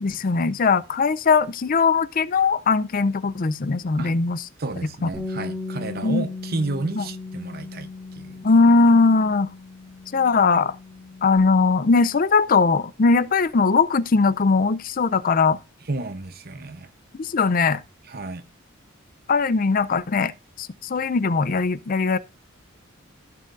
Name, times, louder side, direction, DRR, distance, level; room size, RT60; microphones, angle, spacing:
voice 1, 0.0-4.4 5.0-5.1 6.0-6.2 7.0-7.1 8.4-9.5 10.1-10.8 11.2-15.6 17.2-17.8 19.3-20.3 20.6-22.2, left 4 dB, 45° left, 0.5 m, -20 dB
voice 2, 4.6-8.4 15.9-16.9 18.1-18.4, right 2 dB, 50° right, 0.8 m, -31 dB
Bass guitar, 5.1-11.4, left 3 dB, 5° right, 2.5 m, -37 dB
15.0 x 7.4 x 2.6 m
head